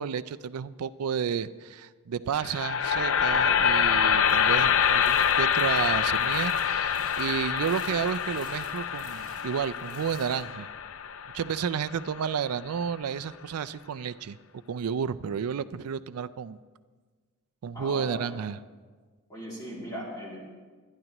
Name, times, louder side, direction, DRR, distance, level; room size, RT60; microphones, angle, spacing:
voice 1, 0.0-10.7 11.3-14.4 14.7-16.6 17.6-18.6, right 7 dB, 75° right, 14 dB, 0.4 m, -31 dB
sound 1, 2.4-12.5, left 8 dB, 65° left, 0.5 m, -26 dB
sound 2, 4.3-10.4, right 4 dB, 20° right, 3.3 m, -51 dB
voice 2, 17.7-18.3 19.3-20.4, equal, 15° left, -5 dB, 2.7 m, -38 dB
23.0 x 10.5 x 3.0 m, 1.4 s
head